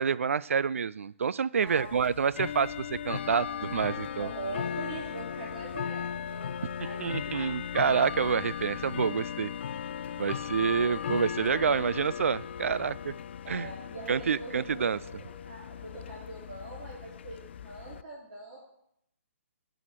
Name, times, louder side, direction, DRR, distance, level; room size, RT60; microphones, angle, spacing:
voice 1, 0.0-4.3 7.0-9.5 10.2-13.1 13.5-13.7 14.1-15.0, right 6 dB, 65° right, 19 dB, 0.3 m, -28 dB
Bell / Tick-tock, 1.7-18.0, left 8 dB, 50° left, 0.4 m, -37 dB
voice 2, 4.2-7.5 13.4-18.6, right 2 dB, 45° right, -8 dB, 4.2 m, -43 dB
11.0 x 4.9 x 7.4 m, 0.76 s
figure-of-eight pair, 140°, 8 cm